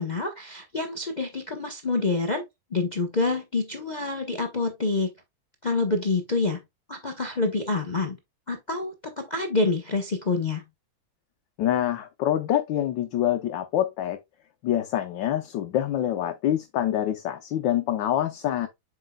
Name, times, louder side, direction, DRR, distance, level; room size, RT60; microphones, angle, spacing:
voice 1, 0.0-2.4 2.7-5.1 5.6-6.6 6.9-8.2 8.5-10.6, left 3 dB, 50° left, 0.5 m, -27 dB
voice 2, 11.6-14.2 14.6-18.7, left 11 dB, 75° left, 1.4 m, -26 dB
7.8 x 5.4 x 2.2 m
omnidirectional pair, 2.1 m